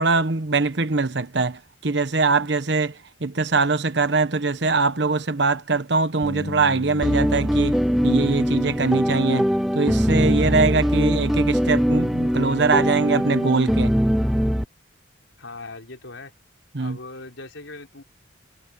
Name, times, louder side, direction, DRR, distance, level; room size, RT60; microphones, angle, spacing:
voice 1, 0.0-14.0 16.7-17.0, right 3 dB, 65° right, 1.1 m, -22 dB
Bass guitar, 6.2-12.5, left 1 dB, 55° left, 2.7 m, -39 dB
sound 1, 7.0-14.6, equal, ahead, 0.4 m, -21 dB
voice 2, 15.4-16.3 16.8-18.0, left 3 dB, 90° left, 5.0 m, -39 dB
head